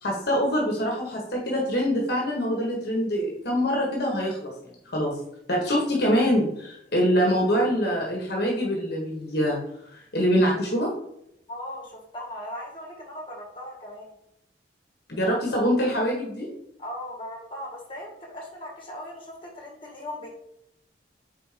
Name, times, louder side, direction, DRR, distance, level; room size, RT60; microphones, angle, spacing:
voice 1, 0.0-4.5 4.9-5.2 5.5-9.6 9.9-10.9 15.1-16.5, equal, 60° left, -2 dB, 1.4 m, -24 dB
voice 2, 11.5-14.1 16.8-20.3, left 1 dB, 30° left, -3 dB, 2.1 m, -38 dB
4.5 x 4.4 x 5.0 m, 0.78 s
head